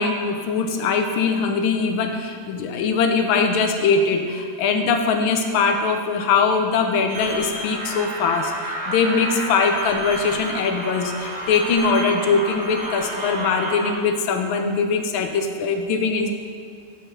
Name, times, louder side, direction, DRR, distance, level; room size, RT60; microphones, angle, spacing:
voice 1, 0.0-16.3, left 5 dB, 85° left, 5 dB, 1.5 m, -21 dB
sound 1, 7.1-13.9, right 1 dB, 60° right, 1.8 m, -30 dB
6.5 x 5.5 x 5.9 m, 2.2 s
omnidirectional pair, 2.2 m